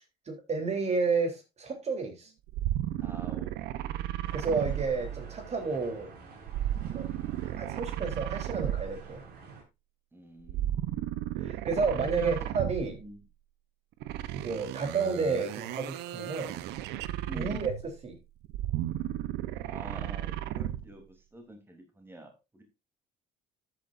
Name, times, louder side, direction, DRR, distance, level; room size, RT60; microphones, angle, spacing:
voice 1, 0.3-2.3 4.3-6.1 6.8-7.1 7.4-9.2 11.4-13.0 14.3-16.6 17.3-18.2, right 4 dB, 40° right, 5 dB, 3.5 m, -31 dB
sound 1, 2.5-5.5 6.5-9.2 10.4-13.1 14.0-18.0 18.4-20.9, right 13 dB, 90° right, 0.8 m, -34 dB
voice 2, 3.0-4.0 4.5-4.8 10.1-10.8 12.2-12.5 12.8-13.2 17.3-17.7 19.7-22.6, right 2 dB, 15° right, 4 dB, 3.4 m, -46 dB
sound 2, 4.2-9.6, right 4 dB, 70° right, 6.3 m, -50 dB
13.5 x 9.1 x 2.6 m, 0.24 s
cardioid pair, 110°, 17 cm